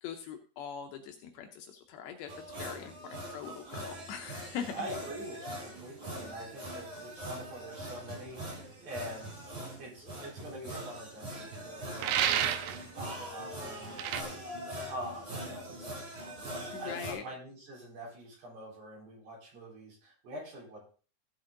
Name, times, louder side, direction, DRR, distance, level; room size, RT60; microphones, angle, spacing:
voice 1, 0.0-4.9 16.7-17.2, left 8 dB, 75° left, 4 dB, 2.7 m, -42 dB
sound 1, 2.3-17.1, equal, 30° right, 3.0 m, -42 dB
voice 2, 4.7-9.3 9.8-16.5 16.8-20.8, equal, 55° right, -4 dB, 5.8 m, -45 dB
sound 2, 12.0-12.8 14.0-14.2, right 10 dB, 80° right, 2.8 m, -29 dB
16.0 x 6.2 x 3.8 m, 0.38 s
omnidirectional pair, 5.5 m